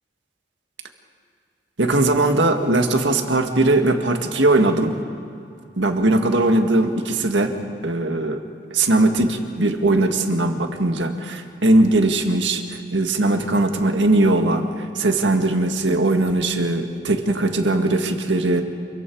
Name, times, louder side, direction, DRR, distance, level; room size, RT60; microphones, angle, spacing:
voice 1, 1.8-5.0 5.8-7.5 7.8-8.4 8.7-18.6, right 2 dB, 80° right, 5 dB, 1.8 m, -19 dB
28.0 x 22.5 x 4.7 m, 2.5 s
head